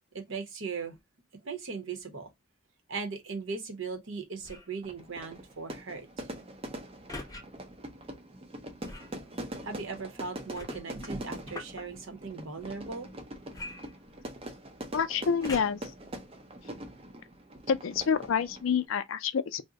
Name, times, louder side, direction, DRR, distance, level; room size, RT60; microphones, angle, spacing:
voice 1, 0.1-0.9 1.4-2.3 2.9-6.3 9.6-13.1, right 4 dB, 75° right, 0.9 m, -38 dB
sound 1, 4.4-4.8 7.1-7.4 8.8-9.2 10.5-11.8 13.5-14.5 15.4-16.0 16.6-16.7, left 2 dB, 20° left, 0.6 m, -43 dB
Fire / Fireworks, 4.8-18.9, right 1 dB, 30° right, 0.5 m, -43 dB
voice 2, 14.9-15.8 17.7-19.6, left 6 dB, 90° left, 0.4 m, -28 dB
2.7 x 2.1 x 3.6 m
head